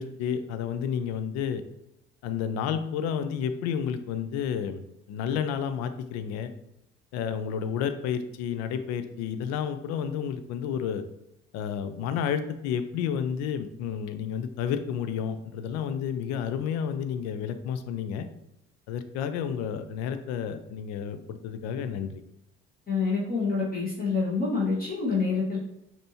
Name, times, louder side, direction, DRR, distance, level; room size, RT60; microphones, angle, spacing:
voice 1, 0.0-1.6 2.2-4.8 5.1-6.5 7.1-11.0 11.5-18.3 18.9-22.2, left 8 dB, 55° left, 10 dB, 0.5 m, -31 dB
voice 2, 22.9-25.7, left 4 dB, 25° left, -6 dB, 1.4 m, -27 dB
5.2 x 2.9 x 2.7 m, 0.84 s
figure-of-eight pair, 50°, 33 cm